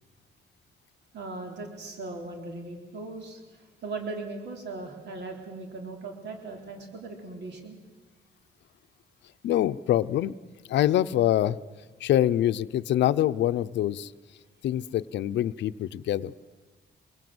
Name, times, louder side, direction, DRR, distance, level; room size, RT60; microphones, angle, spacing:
voice 1, 1.1-7.8, right 3 dB, 75° right, 3 dB, 3.8 m, -38 dB
voice 2, 9.4-10.4 10.7-11.6 12.0-14.1 14.6-16.3, left 12 dB, 85° left, 12 dB, 0.7 m, -25 dB
24.5 x 23.0 x 7.9 m, 1.3 s
cardioid pair, 135°, 18 cm